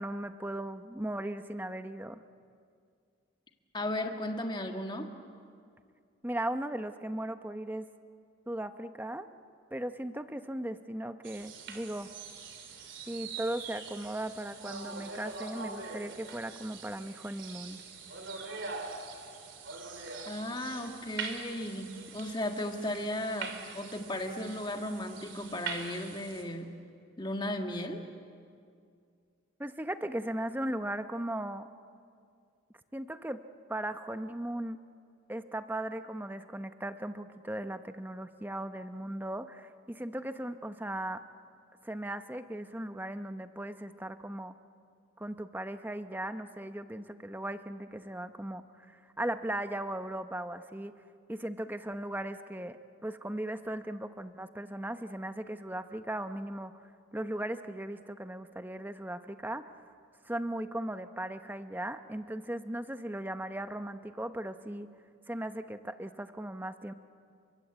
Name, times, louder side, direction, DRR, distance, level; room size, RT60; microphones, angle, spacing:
voice 1, 0.0-2.2 6.2-7.9 8.5-9.3 9.7-12.1 13.1-17.8 29.6-31.7 32.9-33.4 33.7-34.8 35.3-41.2 41.8-44.5 45.2-50.9 51.3-56.7 57.1-59.8 60.2-64.9 65.3-66.9, right 1 dB, 10° right, 9 dB, 0.8 m, -37 dB
voice 2, 3.7-5.1 20.2-26.7 27.2-28.0, left 1 dB, 20° left, 4 dB, 1.7 m, -35 dB
sound 1, 11.2-26.4, right 4 dB, 65° right, 3.3 m, -43 dB
29.5 x 24.5 x 8.1 m, 2.3 s
head